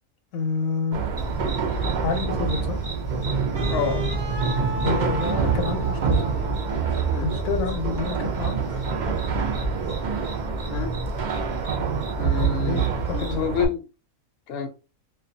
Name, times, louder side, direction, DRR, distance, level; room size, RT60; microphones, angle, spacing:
voice 1, 0.3-1.3 2.0-2.8 4.8-6.2 7.2-8.6 12.6-13.5, left 4 dB, 80° left, 1.0 m, -29 dB
sound 1, 0.9-13.7, right 5 dB, 90° right, 0.4 m, -26 dB
sound 2, 1.2-13.4, equal, 15° right, 0.6 m, -38 dB
Wind instrument woodwind instrument, 3.5-7.6, right 2 dB, 55° right, 0.8 m, -36 dB
voice 2, 3.7-4.1 7.1-7.3 10.7-10.9 12.2-13.8 14.5-14.7, left 6 dB, 60° left, 0.7 m, -28 dB
2.4 x 2.2 x 2.6 m
omnidirectional pair, 1.5 m